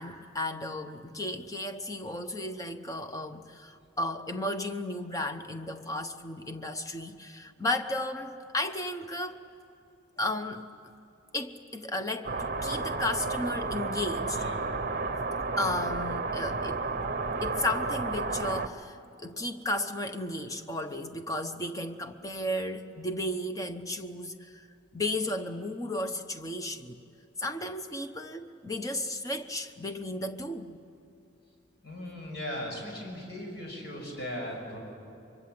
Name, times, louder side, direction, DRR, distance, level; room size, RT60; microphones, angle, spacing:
voice 1, 0.0-9.4 10.2-10.6 11.3-14.4 15.6-16.9 17.4-24.7 24.9-27.0 27.4-30.8, left 1 dB, 15° left, 7 dB, 0.9 m, -34 dB
sound 1, 12.2-18.7, right 3 dB, 45° right, 0.8 m, -32 dB
voice 2, 14.3-14.7 31.8-34.8, left 1 dB, 55° left, 0 dB, 6.2 m, -38 dB
24.0 x 24.0 x 7.8 m, 2.7 s
head